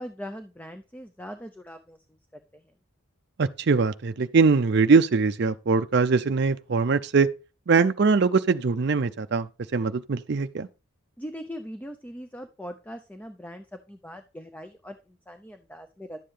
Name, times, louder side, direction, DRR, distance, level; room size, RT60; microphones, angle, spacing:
voice 1, 0.0-2.0 2.3-2.7 11.2-16.2, equal, 5° left, 0.5 m, -41 dB
voice 2, 3.4-7.3 7.7-9.5 9.7-10.7, right 4 dB, 50° right, 0.4 m, -22 dB
11.0 x 7.6 x 3.3 m
head